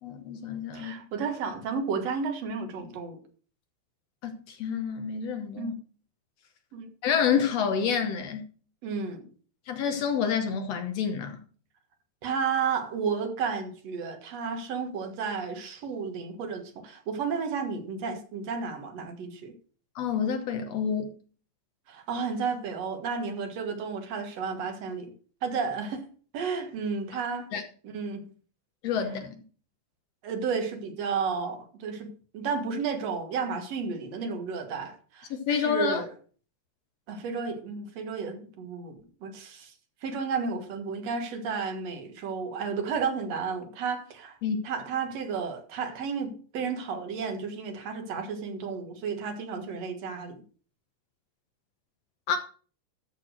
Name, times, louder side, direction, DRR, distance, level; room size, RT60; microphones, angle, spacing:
voice 1, 0.0-1.0 4.2-5.7 7.0-8.4 9.7-11.4 20.0-21.1 27.5-27.6 28.8-29.4 35.3-36.1 44.4-44.6 52.3-52.4, left 7 dB, 70° left, 2.0 m, -28 dB
voice 2, 0.7-3.2 5.6-5.7 6.7-6.9 8.8-9.3 12.2-19.5 21.9-25.1 25.4-26.0 26.3-27.5 27.9-28.3 30.2-36.1 37.1-39.7 40.0-44.4 44.6-50.4, right 5 dB, 65° right, 2.5 m, -32 dB
13.5 x 4.6 x 6.3 m
omnidirectional pair, 3.3 m